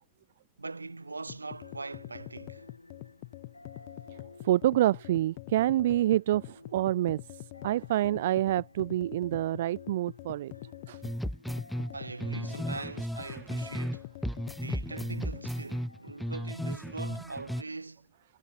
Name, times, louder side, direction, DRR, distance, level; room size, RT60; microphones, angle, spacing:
voice 1, 0.6-2.7 11.9-18.1, right 3 dB, 80° right, 1.7 m, -42 dB
sound 1, 0.8-17.9, left 2 dB, 85° left, 5.1 m, -56 dB
sound 2, 1.3-15.6, left 23 dB, 50° left, 4.0 m, -45 dB
voice 2, 4.4-10.5 10.9-11.0, right 13 dB, 55° right, 0.3 m, -27 dB
sound 3, 11.0-14.0 14.2-17.6, equal, ahead, 1.1 m, -35 dB
figure-of-eight pair, 90°, 0 cm